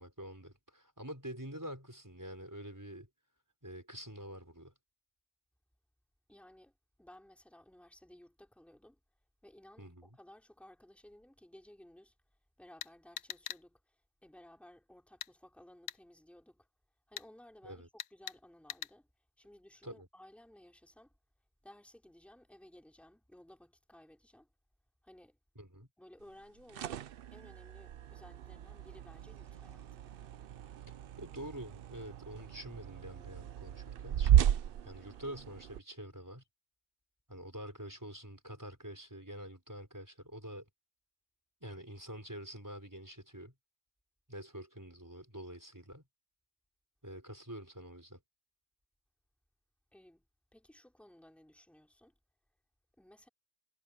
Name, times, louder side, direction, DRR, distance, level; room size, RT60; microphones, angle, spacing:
voice 1, 0.0-3.1 3.6-4.7 9.8-10.1 17.6-17.9 19.8-20.1 25.6-25.9 31.2-34.5 34.8-36.4 37.3-40.6 41.6-43.5 44.3-46.0 47.0-48.2, equal, 15° right, 4.3 m, -46 dB
voice 2, 6.3-9.0 9.4-12.1 12.6-16.7 17.1-19.1 19.4-21.1 21.6-24.5 25.0-25.4 26.0-30.1 49.9-50.2 50.5-52.1 53.0-53.3, left 1 dB, ahead, 3.1 m, -58 dB
sound 1, 12.8-13.6 15.2-15.3 15.9-16.0 17.2-17.3 18.0-18.4 18.7-18.9, left 10 dB, 70° left, 0.9 m, -42 dB
sound 2, 26.4-35.8, right 11 dB, 60° right, 0.7 m, -34 dB
omnidirectional pair, 1.2 m